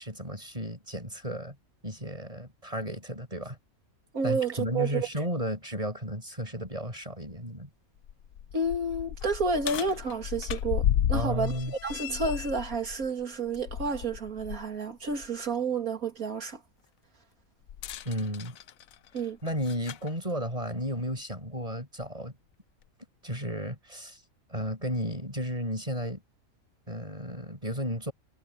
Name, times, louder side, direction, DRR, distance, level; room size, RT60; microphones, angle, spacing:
voice 1, 0.0-1.6 1.8-3.6 4.2-7.7 11.1-11.7 18.0-18.6 19.4-22.3 23.2-24.2 24.5-26.2 26.9-28.1, equal, 25° right, 7.4 m, -33 dB
voice 2, 4.1-5.1 8.5-11.5 11.8-16.6 19.1-19.4, right 3 dB, 85° right, 3.0 m, -30 dB
sound 1, 6.7-6.8 7.3-7.4 8.0-14.7 15.1-15.3 17.7-20.1 21.1-21.2 22.0-22.1, left 10 dB, 80° left, 1.1 m, -33 dB
omnidirectional pair, 1.5 m